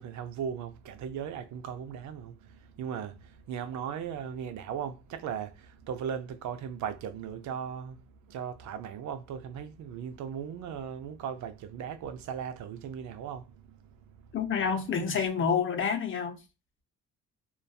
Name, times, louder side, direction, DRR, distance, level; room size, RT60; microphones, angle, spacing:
voice 1, 0.0-13.8, right 8 dB, 70° right, 0.5 m, -38 dB
voice 2, 14.3-16.4, left 6 dB, 40° left, 0.6 m, -28 dB
2.6 x 2.3 x 2.2 m
cardioid pair, 90°, 30 cm